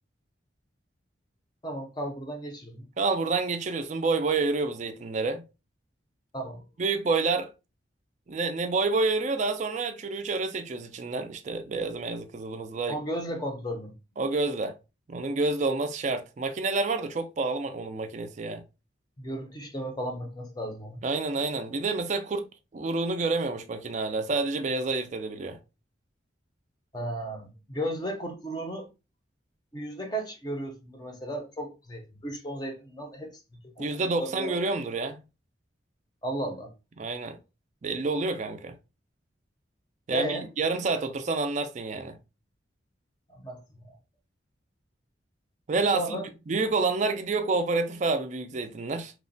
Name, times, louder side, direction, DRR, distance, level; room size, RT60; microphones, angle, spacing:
voice 1, 1.6-2.9 6.3-6.7 12.9-14.0 19.2-21.0 26.9-28.9 29.7-33.3 33.8-34.6 36.2-36.7 40.1-40.5 43.3-43.9 45.9-46.3, right 1 dB, 20° left, 0.5 m, -35 dB
voice 2, 3.0-5.4 6.8-7.5 8.3-13.0 14.2-14.8 15.1-18.6 21.0-22.5 22.7-25.6 33.8-35.2 37.0-37.4 37.8-38.7 40.1-42.2 45.7-49.1, right 3 dB, 40° right, 0.3 m, -28 dB
3.0 x 2.1 x 2.5 m
head